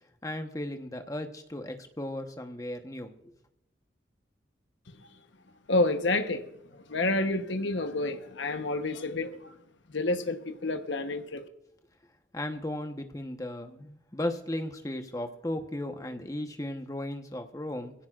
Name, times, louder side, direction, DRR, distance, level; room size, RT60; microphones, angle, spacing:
voice 1, 0.2-3.3 12.3-17.9, left 1 dB, 20° left, 6 dB, 1.0 m, -36 dB
voice 2, 5.7-6.5 6.7-9.6 9.9-11.4, left 2 dB, 80° left, 7 dB, 1.0 m, -29 dB
22.5 x 16.0 x 2.5 m, 0.83 s
head